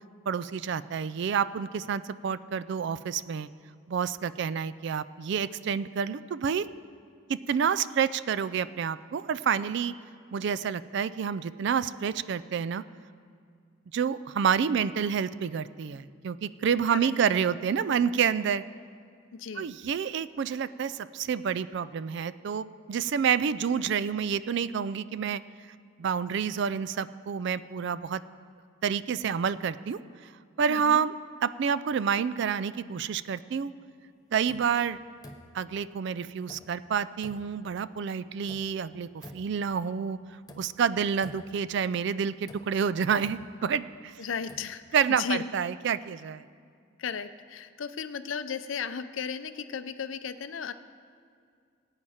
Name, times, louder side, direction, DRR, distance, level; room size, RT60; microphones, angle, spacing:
voice 1, 0.3-3.5 3.9-6.7 7.3-9.9 10.3-12.8 13.9-18.6 19.6-25.4 26.0-28.2 28.8-30.0 30.6-31.2 31.4-33.7 34.3-35.0 35.5-40.2 40.6-44.1 44.9-46.4, right 7 dB, 55° right, 16 dB, 0.3 m, -28 dB
voice 2, 19.3-19.7 30.7-31.0 44.2-44.8 45.1-45.5 47.0-50.7, left 6 dB, 70° left, 11 dB, 0.5 m, -35 dB
sound 1, 34.5-34.8 35.2-35.7 36.5-36.8 37.2-37.6 38.5-38.8 39.2-39.7 40.5-40.8 41.2-41.7 42.5-44.0 44.3-44.7, left 1 dB, 20° left, 0.6 m, -49 dB
18.5 x 8.9 x 4.3 m, 2.2 s
head